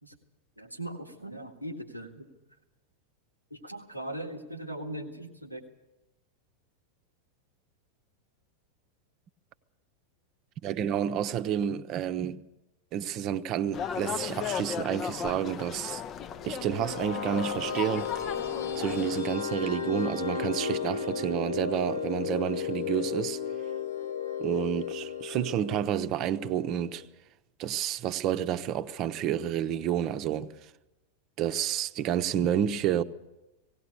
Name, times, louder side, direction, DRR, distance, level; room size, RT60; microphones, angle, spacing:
voice 1, 0.6-2.3 3.5-5.6, right 1 dB, 90° left, 1.8 m, -39 dB
voice 2, 10.6-12.4 12.9-16.0 16.4-18.1 18.7-23.4 24.4-27.0 27.6-30.7 31.4-33.0, right 10 dB, 35° right, 0.8 m, -30 dB
sound 1, 13.7-19.2, left 8 dB, 30° left, 0.6 m, -36 dB
sound 2, 16.2-27.1, left 6 dB, 65° left, 1.4 m, -34 dB
18.0 x 17.5 x 8.2 m
figure-of-eight pair, 90°, 0 cm